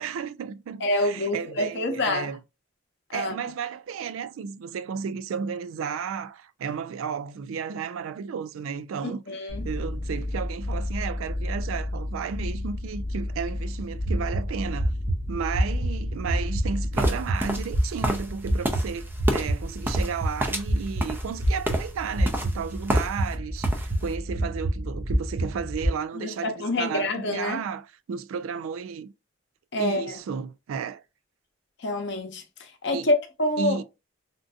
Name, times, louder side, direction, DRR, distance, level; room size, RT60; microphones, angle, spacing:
voice 1, 0.0-2.4 3.1-14.9 15.3-29.1 29.8-31.0 32.9-33.1 33.6-33.8, right 6 dB, 80° right, 0.3 m, -33 dB
voice 2, 0.8-2.3 3.1-3.3 9.0-9.6 26.1-27.6 29.7-30.1 31.8-33.8, left 1 dB, 55° left, 0.7 m, -27 dB
sound 1, 9.5-18.0, left 1 dB, 55° right, 1.6 m, -32 dB
sound 2, 13.8-25.9, right 1 dB, 40° right, 1.1 m, -28 dB
sound 3, 16.9-23.3 23.6-24.1, right 1 dB, 10° right, 0.4 m, -31 dB
3.6 x 2.5 x 2.4 m
head